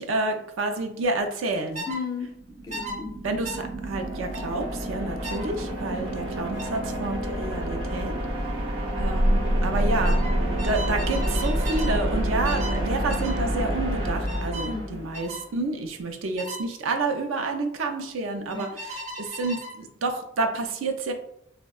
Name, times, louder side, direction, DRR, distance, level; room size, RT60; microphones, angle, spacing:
voice 1, 0.0-1.9 3.2-8.2 9.0-10.2 10.6-21.1, right 2 dB, 85° right, 5 dB, 0.4 m, -29 dB
sound 1, 1.7-2.0 2.7-3.0 3.4-3.6 4.3-4.5 5.2-5.5 6.6-6.8 8.2-8.5 8.8-9.1 10.0-12.0 12.4-12.8 13.1-13.4 14.3-14.7 15.1-15.4 16.4-16.6 18.5-19.8, equal, 40° right, 0.6 m, -36 dB
voice 2, 1.9-3.2 5.9-6.2 14.7-15.0 18.5-18.8, left 5 dB, 20° left, 3 dB, 0.3 m, -35 dB
sound 2, 2.2-15.4, right 1 dB, 70° right, 0.8 m, -29 dB
sound 3, 9.0-14.0, equal, 70° left, 0.6 m, -27 dB
3.5 x 2.1 x 2.3 m, 0.75 s
head